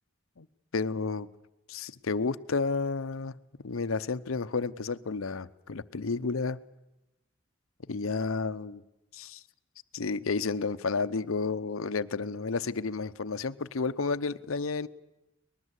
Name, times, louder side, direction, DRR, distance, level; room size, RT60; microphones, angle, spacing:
voice 1, 0.7-1.3 1.7-3.3 3.6-6.6 7.9-8.8 9.1-9.4 9.9-14.9, left 4 dB, 90° left, 14 dB, 0.8 m, -31 dB
23.5 x 20.5 x 8.2 m, 0.94 s
head